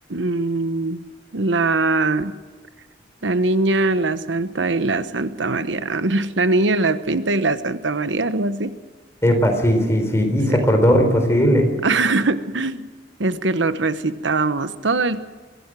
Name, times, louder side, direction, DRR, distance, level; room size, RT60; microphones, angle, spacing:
voice 1, 0.1-1.0 1.3-2.4 3.2-8.7 11.8-12.9 13.2-15.2, right 3 dB, 90° right, 12 dB, 1.1 m, -21 dB
voice 2, 9.2-11.7, equal, 15° left, 4 dB, 4.2 m, -17 dB
23.5 x 16.5 x 7.6 m, 1.4 s
head